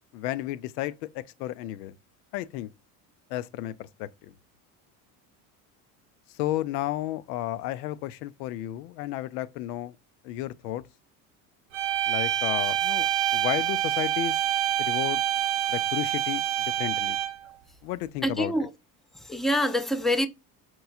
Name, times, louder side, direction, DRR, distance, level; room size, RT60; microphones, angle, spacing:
voice 1, 0.1-2.0 2.3-2.7 3.3-4.3 6.3-10.0 10.2-10.8 12.1-14.4 14.8-15.2 15.7-17.2 17.8-18.5, left 14 dB, 80° left, 0.6 m, -33 dB
sound 1, 11.7-17.5, right 12 dB, 70° right, 0.8 m, -26 dB
voice 2, 18.2-18.7 19.2-20.3, equal, ahead, 0.5 m, -25 dB
4.5 x 3.0 x 2.2 m
supercardioid pair, 85°, 47 cm